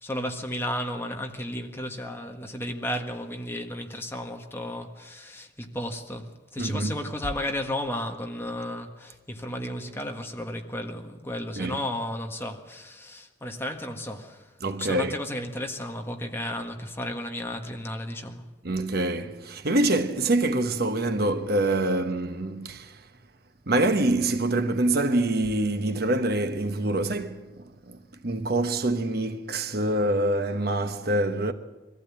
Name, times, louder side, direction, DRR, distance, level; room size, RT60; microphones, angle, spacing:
voice 1, 0.0-14.4 14.8-18.4, left 1 dB, 15° left, 1.6 m, -33 dB
voice 2, 6.6-6.9 11.6-11.8 14.6-15.2 18.6-23.0 23.7-31.5, right 2 dB, 55° right, 1.1 m, -25 dB
22.5 x 15.0 x 8.7 m
head